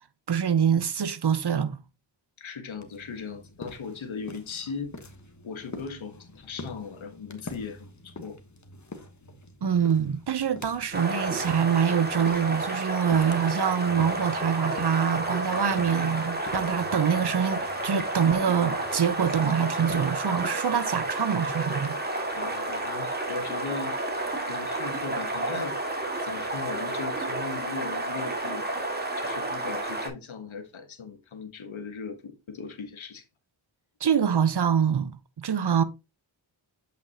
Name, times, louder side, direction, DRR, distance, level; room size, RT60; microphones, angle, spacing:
voice 1, 0.3-1.8 9.6-22.0 34.0-35.1 35.4-35.8, right 7 dB, 55° right, 0.9 m, -25 dB
voice 2, 2.4-5.1 5.4-8.4 22.3-24.0 24.5-25.8 26.2-28.7 29.2-33.2, left 5 dB, 75° left, 1.4 m, -38 dB
sound 1, 2.7-20.2, left 2 dB, 35° left, 1.4 m, -46 dB
sound 2, 10.9-30.1, right 2 dB, 20° right, 2.1 m, -31 dB
8.1 x 5.1 x 2.9 m
cardioid pair, 55°, 47 cm